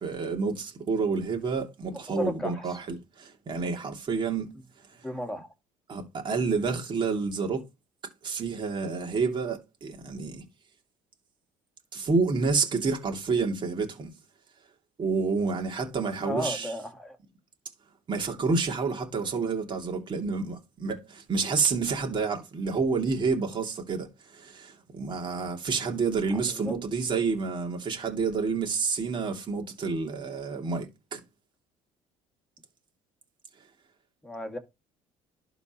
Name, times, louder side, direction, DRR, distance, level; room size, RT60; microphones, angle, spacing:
voice 1, 0.0-4.5 5.9-7.6 8.2-10.4 11.9-14.1 15.0-16.7 18.1-31.2, right 4 dB, 40° right, 2.7 m, -29 dB
voice 2, 1.8-2.8 5.0-5.5 16.2-17.2 26.3-26.7 34.2-34.6, equal, 5° left, 2.3 m, -34 dB
12.0 x 4.1 x 3.0 m
cardioid pair, 95°, 13 cm